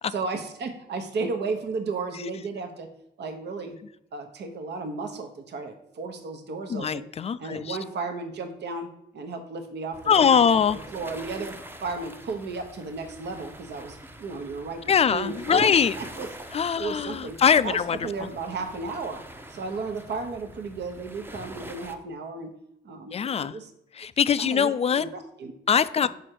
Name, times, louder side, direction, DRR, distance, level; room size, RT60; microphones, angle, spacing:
voice 1, 0.1-2.9 3.2-3.8 4.1-7.1 7.4-8.9 9.1-10.6 10.9-11.6 11.8-14.8 15.1-16.3 16.8-17.4 17.6-19.2 19.5-22.5 22.8-23.7 24.4-25.5 26.0-26.1, right 4 dB, 60° right, 6 dB, 1.1 m, -34 dB
voice 2, 6.7-7.8 10.1-10.8 14.9-15.9 16.5-18.0 23.1-23.5 24.0-25.0 25.7-26.1, left 7 dB, 30° left, 15 dB, 0.3 m, -22 dB
sound 1, 9.9-21.9, right 1 dB, 10° right, 0.7 m, -43 dB
6.2 x 5.0 x 4.6 m, 0.77 s
cardioid pair, 90°, 20 cm